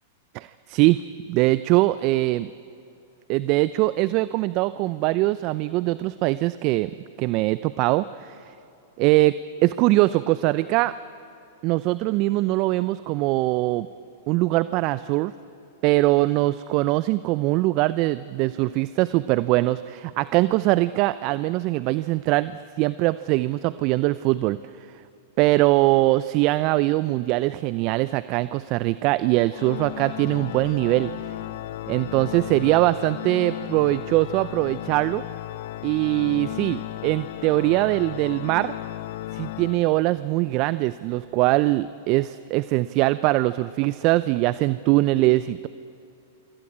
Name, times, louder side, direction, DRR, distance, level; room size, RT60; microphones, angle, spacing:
voice 1, 0.3-1.0 1.3-2.5 3.3-6.9 7.2-8.4 9.0-10.9 11.6-13.9 14.3-15.3 15.8-22.5 22.8-24.6 25.4-31.1 31.9-35.2 35.8-38.7 39.3-45.7, right 18 dB, 45° right, 16 dB, 0.6 m, -22 dB
Organ, 29.5-40.4, left 16 dB, 60° left, 0.6 m, -35 dB
27.5 x 25.0 x 8.6 m, 2.6 s
hypercardioid pair, 105°, 0 cm